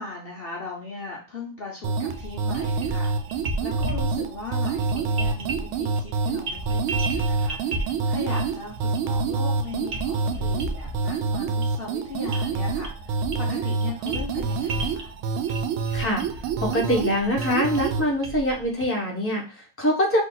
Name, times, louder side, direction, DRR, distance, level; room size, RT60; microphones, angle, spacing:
voice 1, 0.0-3.1 3.6-15.1, left 3 dB, 80° left, -2 dB, 0.5 m, -38 dB
sound 1, 1.8-18.0, right 4 dB, 90° right, 1.4 m, -27 dB
sound 2, 2.1-18.8, right 2 dB, 55° right, 0.9 m, -35 dB
voice 2, 15.9-16.2 16.6-20.2, equal, 10° left, -1 dB, 0.6 m, -24 dB
3.4 x 3.1 x 3.9 m, 0.36 s
omnidirectional pair, 2.2 m